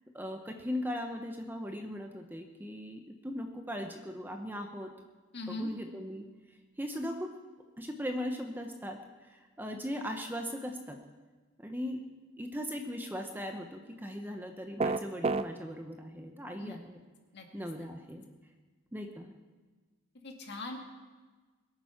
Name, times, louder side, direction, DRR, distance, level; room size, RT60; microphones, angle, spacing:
voice 1, 0.1-4.9 5.5-6.2 6.8-7.3 7.8-11.0 11.6-12.0 12.4-17.0 17.5-18.3 18.9-19.3, equal, 10° right, 4 dB, 0.8 m, -38 dB
voice 2, 5.3-5.7 16.6-16.8 17.3-17.5 17.8-17.9 20.2-20.8, left 2 dB, 50° left, 2 dB, 2.2 m, -40 dB
sound 1, 14.8-15.5, right 3 dB, 25° right, 0.4 m, -28 dB
22.0 x 8.9 x 5.8 m, 1.4 s
head